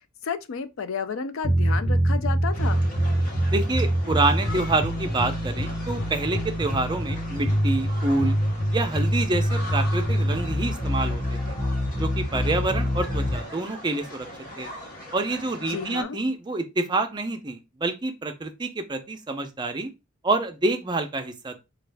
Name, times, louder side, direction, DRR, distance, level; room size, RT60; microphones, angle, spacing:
voice 1, 0.2-2.9 15.7-16.2, left 6 dB, 65° left, 0.4 m, -32 dB
sound 1, 1.4-13.4, equal, 25° left, 1.5 m, -25 dB
sound 2, 2.5-16.0, left 1 dB, 45° left, 1.0 m, -40 dB
voice 2, 3.5-8.4 8.7-11.6 12.0-14.3 14.6-14.7 15.1-19.9 20.2-21.6, right 2 dB, 20° right, 0.5 m, -27 dB
4.1 x 2.3 x 3.3 m
head